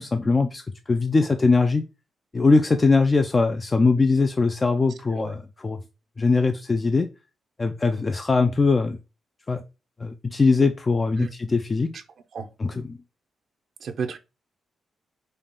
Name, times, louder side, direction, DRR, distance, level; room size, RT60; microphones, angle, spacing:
voice 1, 0.0-1.8 2.3-5.8 6.2-7.1 7.6-9.0 9.5-9.6 10.0-11.9 12.6-13.0, left 3 dB, 25° left, 0.4 m, -21 dB
voice 2, 13.8-14.2, right 6 dB, 60° right, 0.7 m, -31 dB
5.5 x 2.4 x 3.6 m
cardioid pair, 125°, 0 cm